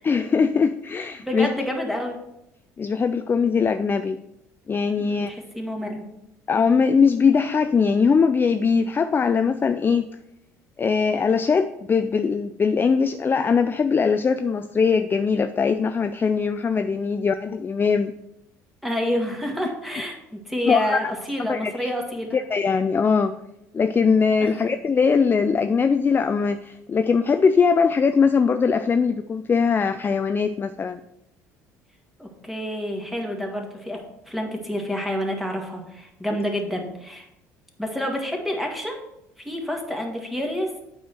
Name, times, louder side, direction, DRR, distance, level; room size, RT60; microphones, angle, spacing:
voice 1, 0.0-1.5 2.8-4.2 4.7-5.3 6.5-10.0 10.8-18.1 20.7-21.1 21.5-21.9 22.3-23.3 23.7-31.0 36.3-36.4, left 5 dB, 25° left, 10 dB, 0.4 m, -21 dB
voice 2, 1.2-2.2 5.0-6.0 18.8-22.4 24.4-24.6 32.2-34.0 34.3-37.3 37.8-39.0 39.4-40.7, equal, ahead, 1 dB, 1.8 m, -28 dB
8.0 x 4.7 x 4.4 m, 0.83 s
hypercardioid pair, 65°, 9 cm